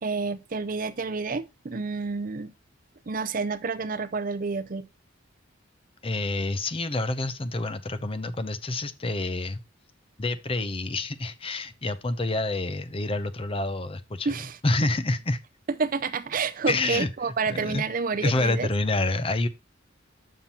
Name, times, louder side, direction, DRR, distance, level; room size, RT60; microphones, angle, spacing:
voice 1, 0.0-2.5 3.1-4.9 14.3-14.6 15.8-18.7, right 4 dB, 45° right, 0.5 m, -29 dB
voice 2, 6.0-9.6 10.2-14.3 14.6-15.4 16.7-17.1 17.5-17.8 18.2-19.5, left 2 dB, 30° left, 0.7 m, -28 dB
7.3 x 5.8 x 4.2 m
head